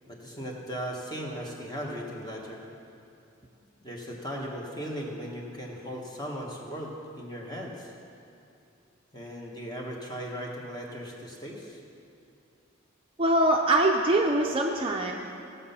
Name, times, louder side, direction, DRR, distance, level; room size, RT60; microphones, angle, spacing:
voice 1, 0.0-2.6 3.8-7.9 9.1-11.8, equal, 20° left, -2 dB, 1.5 m, -37 dB
voice 2, 13.2-15.1, right 1 dB, 25° right, 1 dB, 0.6 m, -23 dB
16.5 x 6.8 x 5.7 m, 2.7 s
head